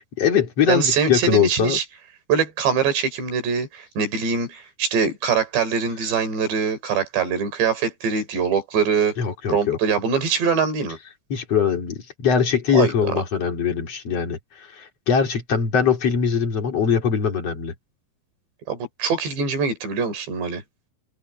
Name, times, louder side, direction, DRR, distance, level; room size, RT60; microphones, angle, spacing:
voice 1, 0.2-1.8 9.2-9.8 11.3-17.7, left 7 dB, 35° left, 3.4 m, -21 dB
voice 2, 0.7-1.8 2.3-9.2 9.5-11.0 12.7-12.9 18.7-20.6, right 6 dB, 65° right, 6.4 m, -23 dB
open air
omnidirectional pair, 5.4 m